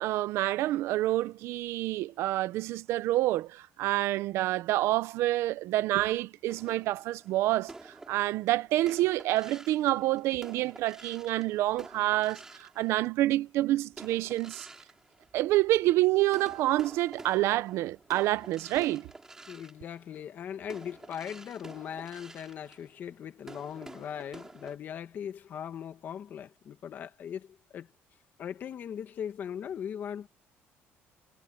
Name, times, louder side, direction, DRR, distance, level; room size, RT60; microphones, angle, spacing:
voice 1, 0.0-7.7 8.1-14.7 15.3-19.1, right 16 dB, 75° right, 0.7 m, -28 dB
sound 1, 6.5-13.4 13.9-15.9 16.3-24.8, right 2 dB, 10° right, 4.8 m, -50 dB
voice 2, 19.5-27.9 28.4-30.3, left 8 dB, 45° left, 1.9 m, -39 dB
cardioid pair, 160°, 5 cm